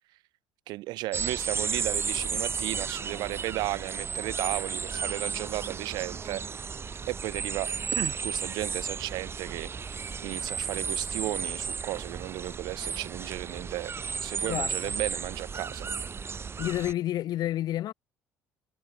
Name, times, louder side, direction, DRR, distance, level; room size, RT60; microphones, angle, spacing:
voice 1, 0.7-6.8 7.1-13.9 14.2-15.9, right 18 dB, 65° right, 1.5 m, -34 dB
sound 1, 1.1-16.9, right 5 dB, 30° right, 1.1 m, -34 dB
voice 2, 14.4-14.7 16.6-17.9, left 13 dB, 55° left, 4.0 m, -29 dB
figure-of-eight pair, 55°, 8 cm